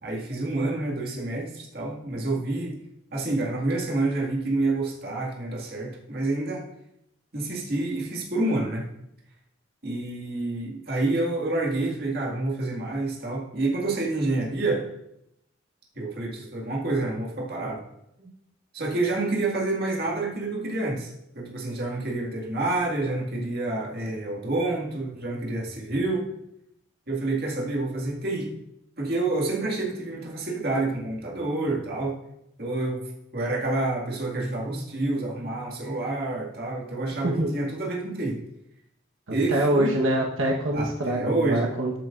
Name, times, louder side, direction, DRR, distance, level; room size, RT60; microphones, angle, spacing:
voice 1, 0.0-2.8 3.1-6.7 7.3-8.9 9.8-14.9 15.9-17.8 18.2-18.3 18.7-26.3 27.1-28.5 29.0-32.2 32.6-33.0 33.3-38.4 39.3-39.9 40.7-41.6, right 2 dB, 50° right, -2 dB, 2.1 m, -28 dB
voice 2, 39.3-42.0, right 1 dB, 90° right, -2 dB, 1.3 m, -25 dB
13.5 x 7.8 x 2.6 m, 0.80 s
head